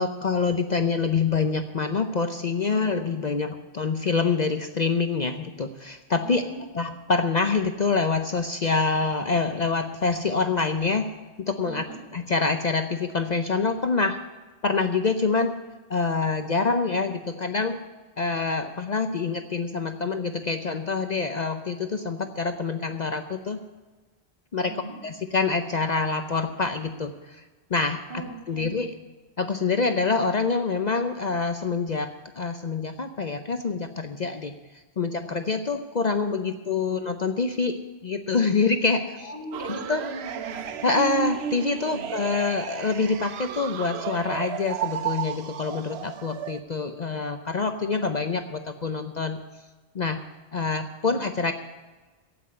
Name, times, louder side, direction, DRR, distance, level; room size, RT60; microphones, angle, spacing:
voice 1, 0.0-6.4 6.7-11.1 11.4-11.8 12.1-14.2 14.6-15.5 15.9-17.8 18.2-23.6 24.5-24.7 25.0-27.4 27.7-28.0 28.5-28.9 29.4-39.3 39.6-40.0 40.8-49.4 49.9-50.2 50.5-51.5, left 4 dB, 45° left, 7 dB, 0.7 m, -26 dB
voice 2, 6.2-6.7 11.6-12.0 24.6-25.0 28.1-28.7 39.2-40.7 41.8-42.1, right 2 dB, 50° right, -1 dB, 3.1 m, -39 dB
sound 1, 39.5-46.6, right 9 dB, 75° right, 0.9 m, -33 dB
15.5 x 6.1 x 9.4 m, 1.3 s
omnidirectional pair, 1.1 m